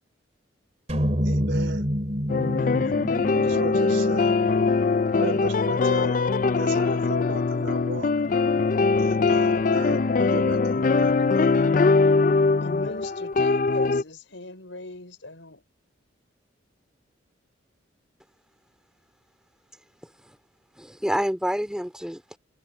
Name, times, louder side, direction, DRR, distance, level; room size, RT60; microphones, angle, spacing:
sound 1, 0.9-5.2, equal, 35° right, 2.2 m, -28 dB
voice 1, 1.2-1.9 3.3-4.4 5.2-6.2 6.6-8.1 9.0-11.6, right 2 dB, 75° right, 3.8 m, -36 dB
sound 2, 2.3-14.0, left 4 dB, 40° left, 0.4 m, -22 dB
voice 2, 2.4-3.1 12.6-15.6, left 2 dB, 75° left, 5.4 m, -39 dB
voice 3, 20.8-22.4, equal, 5° right, 2.8 m, -28 dB
head